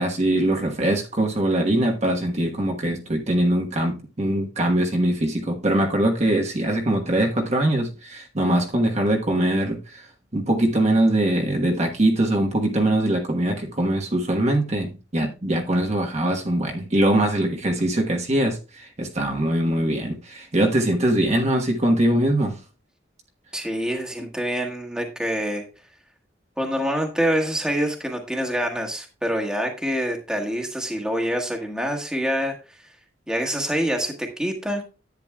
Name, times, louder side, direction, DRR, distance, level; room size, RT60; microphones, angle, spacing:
voice 1, 0.0-10.1 10.3-22.6, right 1 dB, 35° right, 1.3 m, -22 dB
voice 2, 23.5-25.7 26.6-32.5 33.3-34.8, equal, 5° right, 1.5 m, -26 dB
10.5 x 9.0 x 2.3 m
head